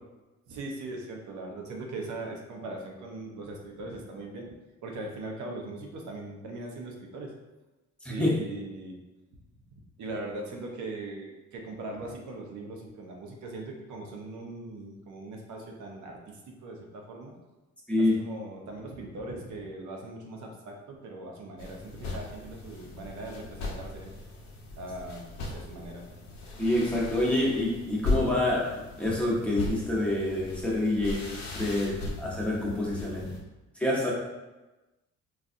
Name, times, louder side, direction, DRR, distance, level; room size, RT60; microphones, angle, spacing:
voice 1, 0.5-4.5 4.8-7.3 8.1-9.0 9.7-17.4 18.0-24.1 24.8-26.1 33.2-33.4, right 2 dB, 75° right, 0 dB, 0.7 m, -40 dB
sound 1, 21.6-33.4, left 3 dB, 65° left, 0.8 m, -37 dB
voice 2, 26.6-28.7 29.0-31.2 31.5-33.2 33.8-34.1, left 1 dB, 5° left, -5 dB, 0.9 m, -27 dB
4.1 x 2.3 x 2.5 m, 1.1 s
cardioid pair, 90°, 30 cm